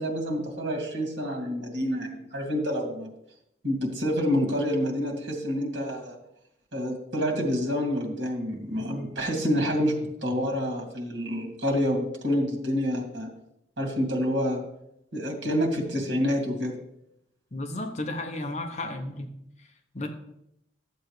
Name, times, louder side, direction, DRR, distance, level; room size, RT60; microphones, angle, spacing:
voice 1, 0.0-3.1 3.6-6.2 6.7-10.0 10.2-13.3 13.8-14.6 15.1-16.8, equal, 80° right, 1 dB, 2.3 m, -28 dB
voice 2, 17.5-19.3 19.9-20.1, left 2 dB, 40° left, 4 dB, 0.8 m, -33 dB
12.5 x 7.8 x 3.2 m, 0.80 s
head